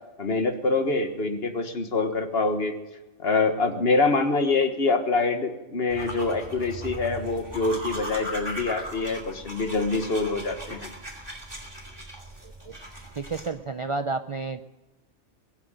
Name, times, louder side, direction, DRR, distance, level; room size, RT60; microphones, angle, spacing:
voice 1, 0.2-2.8 3.2-10.9, left 3 dB, 55° left, 7 dB, 1.6 m, -25 dB
sound 1, 5.9-13.5, right 1 dB, 20° right, 2.7 m, -38 dB
voice 2, 13.2-14.6, right 3 dB, 40° right, 9 dB, 0.4 m, -30 dB
22.5 x 7.8 x 7.8 m, 1.1 s
omnidirectional pair, 1.2 m